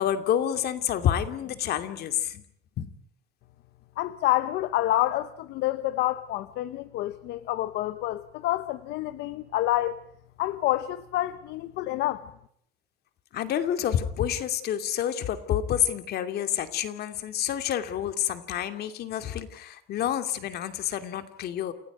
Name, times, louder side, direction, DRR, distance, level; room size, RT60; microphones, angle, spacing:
voice 1, 0.0-2.4 2.8-2.9 13.3-21.7, left 10 dB, 70° left, 2.6 m, -28 dB
voice 2, 4.0-10.0 10.4-12.3, left 15 dB, 85° left, 1.0 m, -28 dB
29.0 x 16.5 x 9.3 m
cardioid pair, 110°, 17 cm